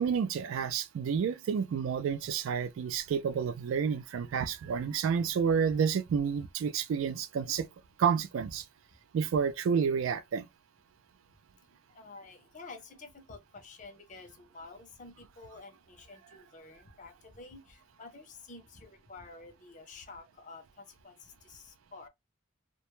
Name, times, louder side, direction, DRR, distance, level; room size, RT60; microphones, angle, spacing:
voice 1, 0.0-7.7 8.0-8.6 9.1-10.5, right 6 dB, 80° right, 0.3 m, -30 dB
voice 2, 11.7-22.1, left 3 dB, 40° left, 0.5 m, -50 dB
2.2 x 2.0 x 2.9 m
head